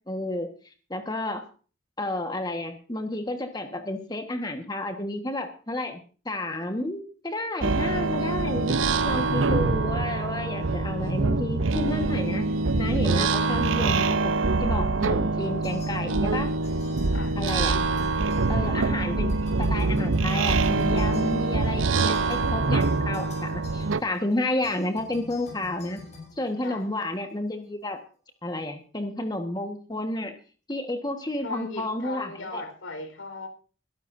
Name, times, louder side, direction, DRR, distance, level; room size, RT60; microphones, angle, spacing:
voice 1, 0.1-0.5 0.9-1.4 2.0-8.8 9.1-12.5 12.8-14.3 14.6-16.5 17.4-17.8 18.5-26.0 26.4-28.0 28.4-30.3 30.7-32.6, left 1 dB, 20° left, 6 dB, 1.4 m, -31 dB
sound 1, 7.6-24.0, right 3 dB, 85° right, 0.8 m, -24 dB
sound 2, 15.6-16.4 16.6-19.0 19.3-27.1, left 3 dB, 35° left, 7.7 m, -47 dB
voice 2, 31.4-33.5, left 3 dB, 90° left, 7 dB, 4.4 m, -37 dB
22.5 x 12.5 x 2.7 m, 0.38 s
head